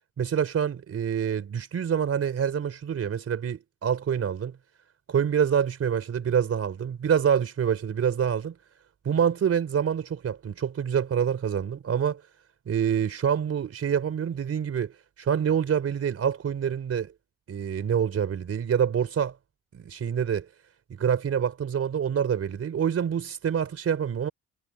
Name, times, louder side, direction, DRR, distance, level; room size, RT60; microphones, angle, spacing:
voice 1, 0.2-4.5 5.1-8.6 9.0-12.2 12.7-17.1 17.5-19.3 19.7-20.5 20.9-24.3, right 8 dB, 50° right, 3.9 m, -26 dB
cardioid pair, 90°, 30 cm